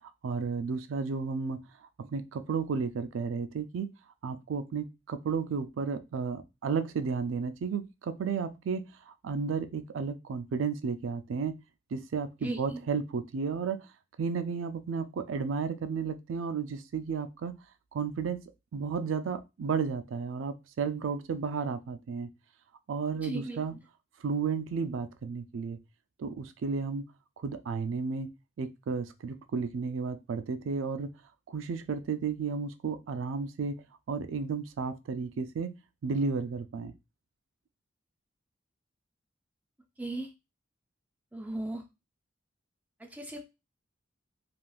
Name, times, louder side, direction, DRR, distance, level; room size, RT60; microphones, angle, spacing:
voice 1, 0.2-1.6 2.0-3.9 4.2-8.9 9.2-11.6 11.9-13.8 14.2-17.5 17.9-22.3 22.9-23.8 24.2-25.8 26.2-27.0 27.4-28.3 28.6-31.1 31.5-33.8 34.1-35.7 36.0-36.9, right 5 dB, 75° right, 10 dB, 0.4 m, -33 dB
voice 2, 12.4-12.8 23.2-23.6 40.0-40.3 41.3-41.8 43.0-43.4, right 2 dB, 10° right, 2 dB, 0.4 m, -36 dB
3.4 x 2.4 x 2.3 m, 0.25 s
head